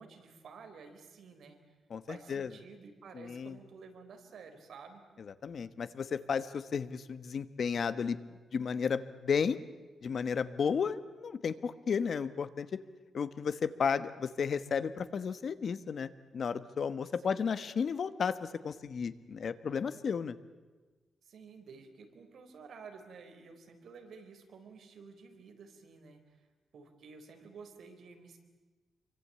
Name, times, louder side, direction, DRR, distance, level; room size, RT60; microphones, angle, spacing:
voice 1, 0.0-1.6 2.1-5.0 17.2-17.5 21.2-26.2 26.7-28.4, right 5 dB, 65° right, 5 dB, 4.2 m, -52 dB
voice 2, 1.9-2.5 3.1-3.6 5.2-9.6 10.0-12.8 13.1-20.4, left 6 dB, 50° left, 13 dB, 1.1 m, -33 dB
27.0 x 24.0 x 8.7 m, 1.3 s
wide cardioid pair, 145°, 0 cm